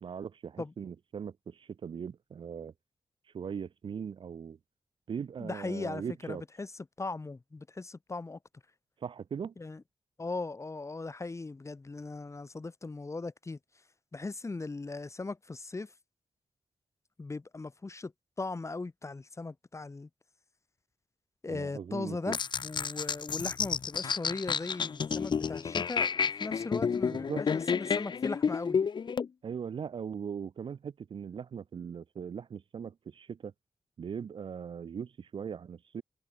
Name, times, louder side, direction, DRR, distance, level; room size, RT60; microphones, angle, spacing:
voice 1, 0.0-2.7 3.3-4.6 5.1-6.4 9.0-9.5 21.5-22.4 27.1-27.4 29.4-33.5 34.0-36.0, right 7 dB, 65° right, 0.8 m, -39 dB
voice 2, 5.4-6.7 7.0-8.4 9.6-9.8 10.2-13.6 14.1-15.9 17.2-18.1 18.4-20.1 21.4-22.4 22.6-28.8, left 3 dB, 30° left, 2.3 m, -38 dB
sound 1, 22.3-29.3, left 6 dB, 55° left, 0.7 m, -30 dB
cardioid pair, 75°, 9 cm